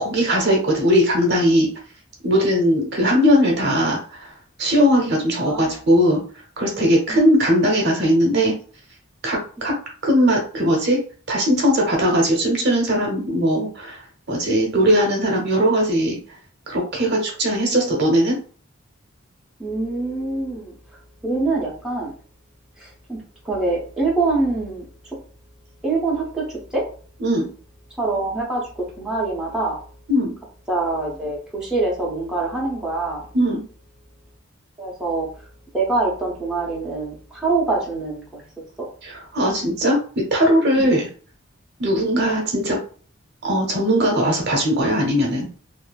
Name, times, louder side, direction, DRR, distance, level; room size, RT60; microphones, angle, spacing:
voice 1, 0.0-1.7 2.2-4.3 4.6-6.2 6.6-8.6 9.2-9.7 10.0-11.0 11.3-14.0 14.3-16.2 16.7-18.4 27.2-27.5 30.1-30.3 33.3-33.6 39.0-41.1 41.8-42.8 43.4-45.5, equal, 55° right, -1 dB, 0.8 m, -19 dB
voice 2, 5.5-5.8 7.1-7.2 19.6-20.7 21.2-22.1 22.8-23.2 23.4-24.8 25.8-26.8 28.0-29.8 30.7-33.2 34.8-35.3 35.7-38.4 38.8-38.9 40.8-40.9 41.9-42.1, right 3 dB, 5° right, -5 dB, 0.7 m, -24 dB
2.5 x 2.5 x 2.3 m, 0.41 s
head